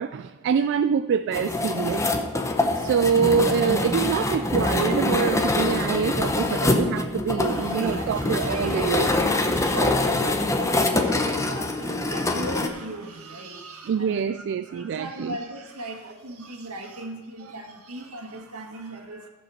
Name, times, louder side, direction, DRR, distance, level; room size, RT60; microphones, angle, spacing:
voice 1, 0.0-2.3 2.8-9.1 13.9-15.4, right 6 dB, 55° right, 12 dB, 0.3 m, -25 dB
sound 1, 1.3-12.7, left 2 dB, 15° left, 0.8 m, -24 dB
voice 2, 7.3-19.3, right 1 dB, 75° right, 2 dB, 1.8 m, -37 dB
15.0 x 5.3 x 7.1 m, 1.2 s
head